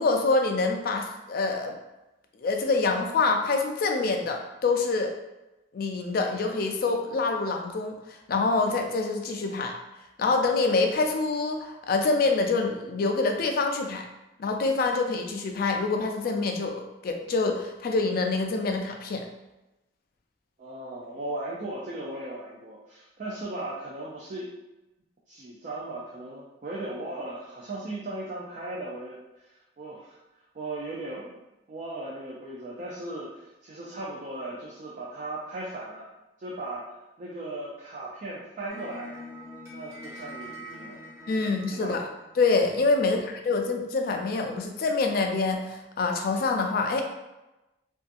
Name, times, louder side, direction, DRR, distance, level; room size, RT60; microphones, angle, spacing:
voice 1, 0.0-1.8 2.4-5.1 5.7-8.0 8.3-9.8 10.2-14.0 14.4-19.3 41.3-42.0 42.4-47.0, left 3 dB, 55° left, 3 dB, 0.3 m, -26 dB
voice 2, 20.6-24.5 25.3-29.5 29.8-30.2 30.5-31.4 31.7-36.1 36.4-36.9 37.2-39.2 39.7-41.0 41.3-42.0 43.0-43.3, right 2 dB, 45° right, -5 dB, 0.4 m, -37 dB
sound 1, 38.7-43.0, equal, 15° right, 0.9 m, -44 dB
2.6 x 2.3 x 2.4 m, 1.0 s
head